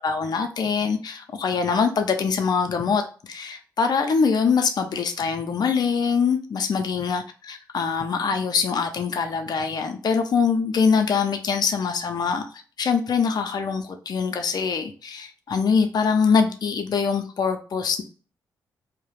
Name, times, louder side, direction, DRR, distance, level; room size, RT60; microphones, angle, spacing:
voice 1, 0.0-3.0 3.3-12.4 12.8-18.0, left 5 dB, 55° left, 5 dB, 0.5 m, -23 dB
2.3 x 2.0 x 3.2 m, 0.37 s
supercardioid pair, 45°, 8 cm